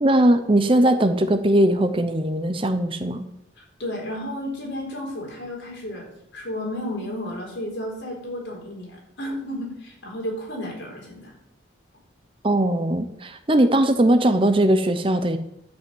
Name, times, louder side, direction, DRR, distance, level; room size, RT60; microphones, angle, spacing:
voice 1, 0.0-3.2 12.4-15.4, right 1 dB, 25° right, 9 dB, 0.7 m, -19 dB
voice 2, 3.6-6.1 6.3-11.3, left 1 dB, 70° left, -2 dB, 4.3 m, -32 dB
11.5 x 5.7 x 7.9 m, 0.79 s
head